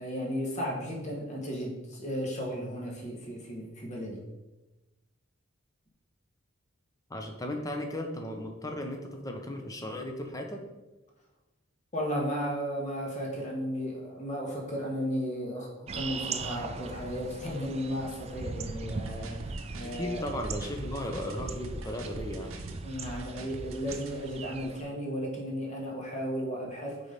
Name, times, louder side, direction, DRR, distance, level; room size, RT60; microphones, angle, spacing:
voice 1, 0.0-4.2 11.9-20.3 22.8-27.1, equal, 35° left, -1 dB, 1.3 m, -34 dB
voice 2, 7.1-10.6 19.9-22.7, left 1 dB, 15° left, 3 dB, 0.7 m, -36 dB
sound 1, 15.9-24.8, right 4 dB, 30° right, 0.3 m, -40 dB
sound 2, 18.9-24.2, right 1 dB, 85° right, 0.7 m, -43 dB
4.8 x 4.1 x 5.1 m, 1.1 s
head